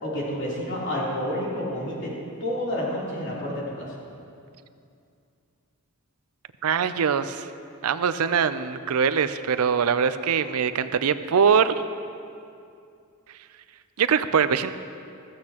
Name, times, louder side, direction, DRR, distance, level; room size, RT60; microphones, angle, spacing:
voice 1, 0.0-2.1 2.4-3.9, left 1 dB, 55° left, -6 dB, 3.3 m, -29 dB
voice 2, 6.6-7.5 7.8-11.7 14.0-14.7, right 6 dB, 75° right, 12 dB, 0.5 m, -22 dB
15.0 x 14.5 x 2.9 m, 2.5 s
head